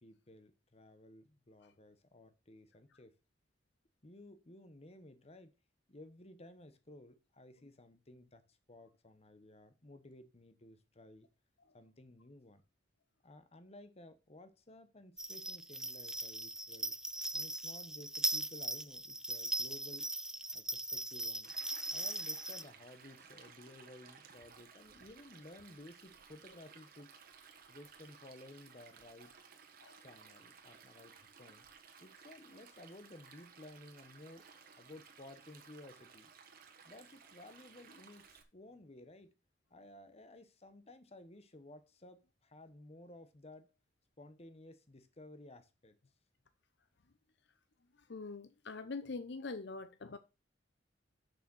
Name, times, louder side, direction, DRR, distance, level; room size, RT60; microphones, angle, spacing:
voice 1, 0.0-3.2 4.0-5.5 5.9-11.3 11.7-12.6 13.2-16.9 17.3-20.1 20.5-21.5 21.9-27.2 27.7-29.3 30.0-31.7 32.0-34.4 34.8-36.3 36.8-38.2 38.5-39.3 39.7-43.7 44.2-46.0, left 1 dB, 35° left, 1.2 m, -55 dB
sound 1, 15.2-22.6, right 1 dB, 5° right, 0.5 m, -39 dB
Stream, 21.4-38.4, right 6 dB, 50° right, 1.4 m, -58 dB
voice 2, 48.1-50.2, left 3 dB, 70° left, 0.7 m, -43 dB
6.7 x 6.5 x 6.2 m
head